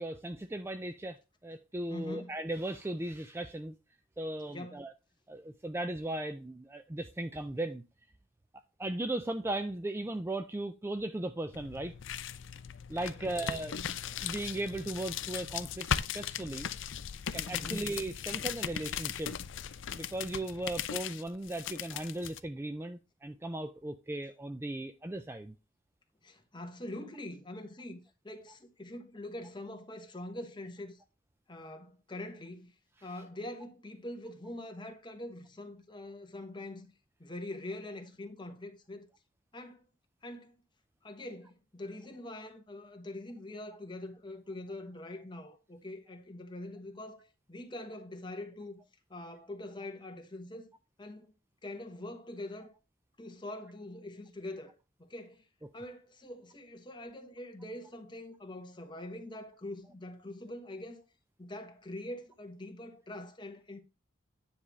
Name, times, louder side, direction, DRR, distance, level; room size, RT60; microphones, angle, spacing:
voice 1, 0.0-3.7 4.2-4.9 5.3-7.8 8.8-11.9 12.9-13.8 14.2-15.9 16.1-16.7 17.3-19.3 19.9-25.5 33.0-33.1, right 1 dB, 10° right, 0.3 m, -37 dB
voice 2, 1.9-2.3 4.5-4.8 13.1-13.9 17.5-17.9 26.2-28.0 28.2-31.0 31.5-32.7 33.0-36.9 37.2-39.1 39.5-39.8 40.2-40.5 41.0-48.8 49.1-51.3 51.6-52.7 53.2-55.4 55.7-61.0 61.4-63.8, left 1 dB, 20° left, 1.2 m, -44 dB
BC leaf walk, 11.5-22.4, left 8 dB, 60° left, 0.5 m, -38 dB
9.8 x 3.4 x 6.1 m
head